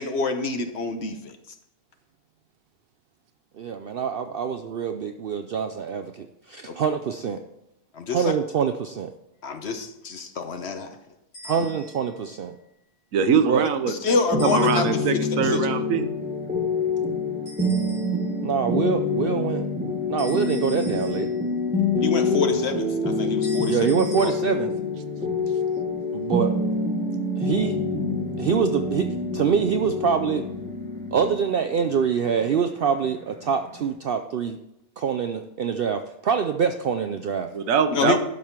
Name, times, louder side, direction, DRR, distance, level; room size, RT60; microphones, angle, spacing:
voice 1, 0.0-1.4 6.7-6.8 7.9-8.3 9.4-11.0 11.4-11.7 13.9-14.9 15.1-15.2 15.5-15.6 22.0-23.8 24.2-24.3 37.9-38.2, left 4 dB, 55° left, 7 dB, 1.1 m, -27 dB
voice 2, 3.6-7.4 8.1-9.1 11.5-12.5 13.3-13.7 18.4-19.6 20.1-21.3 23.7-24.7 26.1-26.5 27.4-27.8 28.4-29.1 29.3-30.4 31.1-34.6 35.0-37.5, right 7 dB, 60° right, 7 dB, 0.6 m, -25 dB
sound 1, 11.3-12.1 14.4-15.3 17.5-18.4 20.2-21.6 23.4-24.3, equal, 80° left, 3.2 m, -42 dB
voice 3, 13.1-13.9 14.4-16.0 37.5-38.2, right 6 dB, 75° right, 9 dB, 1.2 m, -22 dB
sound 2, 14.3-33.9, left 3 dB, 5° right, 1.2 m, -26 dB
12.5 x 5.5 x 4.5 m, 0.86 s
omnidirectional pair, 1.4 m